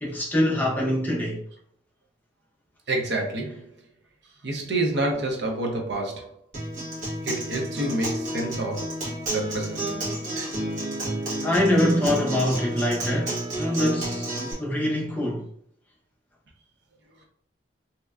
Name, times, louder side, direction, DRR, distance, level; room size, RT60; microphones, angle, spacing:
voice 1, 0.0-1.4 11.4-15.5, left 1 dB, 10° left, 0.6 m, -24 dB
voice 2, 2.9-3.6 4.4-6.4 7.2-9.0 9.3-9.9, right 2 dB, 70° right, 0.8 m, -28 dB
Acoustic guitar, 6.5-14.5, right 1 dB, 45° right, 1.5 m, -30 dB
3.2 x 2.9 x 2.4 m
head